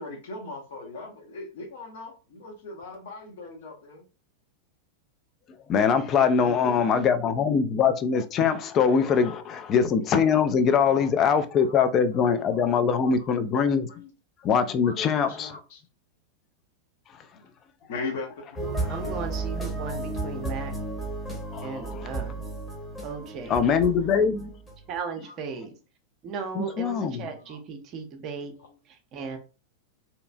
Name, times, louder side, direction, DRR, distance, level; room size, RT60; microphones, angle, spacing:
voice 1, 0.0-4.0 6.1-7.2 8.9-9.0 11.2-11.8 12.1-13.5 13.9-14.1 14.8-15.8 17.9-19.4 23.8-24.2 25.2-25.3 26.7-26.8 27.3-27.6 28.6-28.8, left 3 dB, 55° left, 0.8 m, -41 dB
voice 2, 5.7-13.9 14.4-15.6 21.5-21.8 23.5-24.5 26.6-27.2, left 6 dB, 30° left, 0.3 m, -22 dB
sound 1, 18.6-25.0, right 2 dB, 10° left, 0.9 m, -33 dB
voice 3, 18.6-20.7 21.6-22.4 23.0-23.7 24.9-25.7 26.2-28.5 28.8-29.4, right 5 dB, 35° right, 0.6 m, -36 dB
2.7 x 2.3 x 2.2 m
figure-of-eight pair, 90°, 0 cm